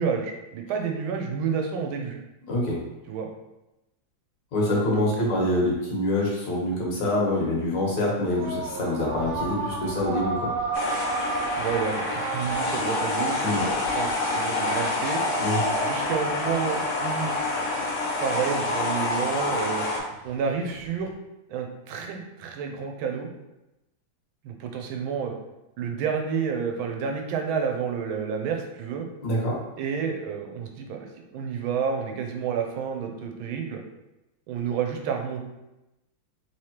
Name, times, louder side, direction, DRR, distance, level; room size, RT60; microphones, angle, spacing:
voice 1, 0.0-2.2 3.1-3.3 4.9-5.4 11.6-15.2 15.8-17.4 18.2-19.8 20.2-21.1 21.5-23.3 24.4-25.3 25.8-29.1 29.8-33.8 34.5-35.4, right 6 dB, 85° right, 3 dB, 1.4 m, -30 dB
voice 2, 2.4-2.8 4.5-10.5 13.4-13.6 15.4-15.6 29.2-29.6, left 1 dB, 65° left, -4 dB, 1.6 m, -25 dB
sound 1, 8.3-21.1, right 3 dB, 70° right, 1.2 m, -34 dB
sound 2, 10.7-20.0, left 2 dB, 90° left, 0.6 m, -27 dB
3.6 x 3.2 x 2.8 m, 0.95 s
omnidirectional pair, 2.2 m